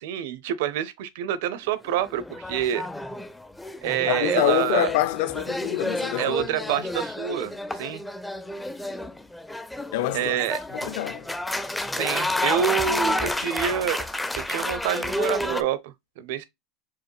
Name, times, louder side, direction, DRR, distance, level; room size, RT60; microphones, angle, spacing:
voice 1, 0.0-2.9 3.8-4.9 6.2-8.0 10.1-10.6 12.0-14.0 14.4-16.5, right 10 dB, 70° right, 0.7 m, -27 dB
sound 1, 1.8-15.6, left 1 dB, 5° left, 0.4 m, -30 dB
voice 2, 4.1-6.8 9.9-10.4 10.7-11.3, left 14 dB, 70° left, 0.5 m, -26 dB
4.7 x 2.4 x 3.0 m
supercardioid pair, 150°, 0 cm